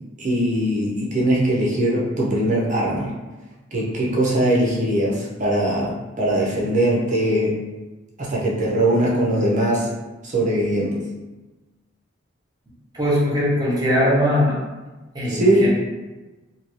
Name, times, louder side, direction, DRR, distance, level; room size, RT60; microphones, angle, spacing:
voice 1, 0.2-3.1 3.7-7.6 8.2-9.9 10.2-11.0 15.3-15.7, right 1 dB, 40° right, -4 dB, 0.6 m, -21 dB
voice 2, 12.9-14.6 15.1-15.7, equal, 20° right, -7 dB, 1.0 m, -20 dB
2.7 x 2.6 x 3.0 m, 1.2 s
head